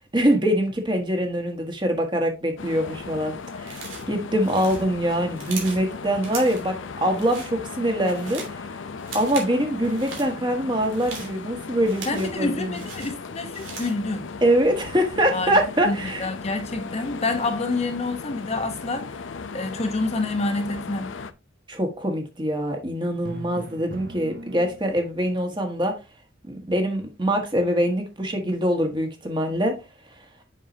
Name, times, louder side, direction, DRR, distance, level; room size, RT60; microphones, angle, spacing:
voice 1, 0.1-8.6 9.1-12.8 14.4-16.3 21.7-25.9 26.5-29.7, equal, 25° right, 1.6 m, -24 dB
sound 1, 2.6-21.3, left 4 dB, 75° left, 0.6 m, -37 dB
sound 2, 3.6-4.1 4.4-5.9 6.2-6.7 7.1-7.5 7.9-8.6 9.0-9.5 9.8-10.3 10.8-12.4 12.7-14.0, right 4 dB, 85° right, 3.0 m, -38 dB
voice 2, 12.1-14.3 15.3-15.6 15.8-19.2 19.5-21.1, left 2 dB, 35° left, 1.0 m, -28 dB
Drum, 23.2-25.3, right 2 dB, 50° right, 0.7 m, -39 dB
7.3 x 5.9 x 2.8 m
head